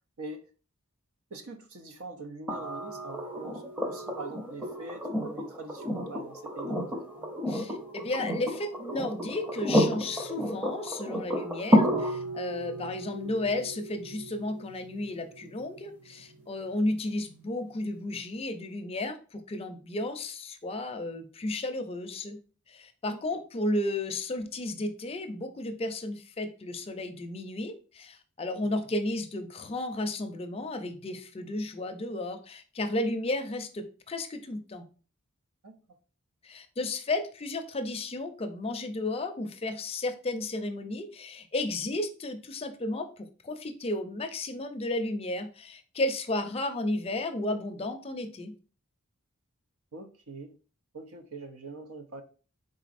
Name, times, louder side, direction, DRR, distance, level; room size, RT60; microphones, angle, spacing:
voice 1, 1.3-7.0 13.2-13.3 23.1-23.4 28.6-28.7 35.6-35.8 49.9-50.6 50.9-52.2, right 3 dB, 85° right, 6 dB, 0.7 m, -43 dB
sound 1, 2.5-16.4 18.2-18.3, equal, 10° right, 0.7 m, -31 dB
voice 2, 7.5-22.4 22.7-34.8 36.4-48.5, left 2 dB, 30° left, 7 dB, 0.5 m, -33 dB
4.0 x 3.7 x 2.5 m, 0.37 s
head